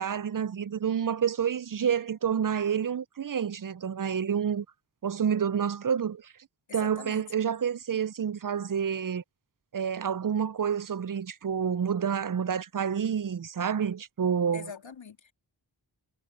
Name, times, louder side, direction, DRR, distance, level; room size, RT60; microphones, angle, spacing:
voice 1, 0.0-4.6 5.0-6.2 6.7-9.2 9.7-14.7, right 7 dB, 50° right, 0.5 m, -28 dB
voice 2, 6.7-7.3 14.5-15.3, left 5 dB, 85° left, 2.2 m, -43 dB
cardioid pair, 40°, 44 cm